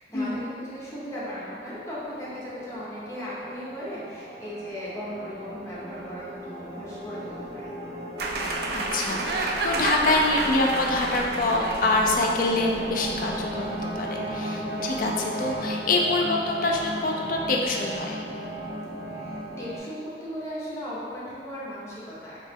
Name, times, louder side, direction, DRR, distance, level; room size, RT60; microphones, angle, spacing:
voice 1, 0.0-7.8 19.1-22.4, equal, 15° left, -8 dB, 0.7 m, -37 dB
sound 1, 0.8-19.8, right 1 dB, 25° right, 0.9 m, -36 dB
sound 2, 8.2-14.0, right 2 dB, 60° right, 0.3 m, -31 dB
voice 2, 8.7-18.2, left 2 dB, 50° left, 0 dB, 0.4 m, -25 dB
3.0 x 2.8 x 3.5 m, 2.2 s
head